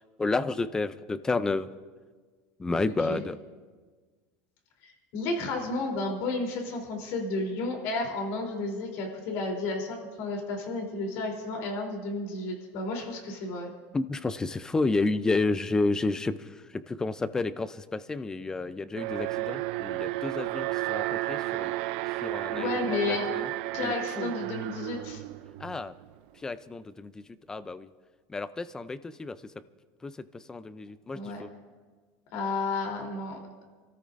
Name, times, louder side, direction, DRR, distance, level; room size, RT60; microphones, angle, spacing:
voice 1, 0.2-1.7 2.6-3.4 13.9-21.7 22.2-23.5 23.8-24.3 25.6-25.9 26.4-27.9 28.3-29.4 30.0-31.5, left 3 dB, 10° left, 14 dB, 0.4 m, -31 dB
voice 2, 4.8-13.7 22.5-23.3 23.7-25.2 31.1-31.4 32.3-33.4, left 3 dB, 60° left, 1 dB, 3.4 m, -32 dB
Alarm, 19.0-26.1, right 18 dB, 75° right, 0.4 m, -32 dB
29.5 x 13.5 x 2.6 m, 1.5 s
cardioid pair, 155°, 6 cm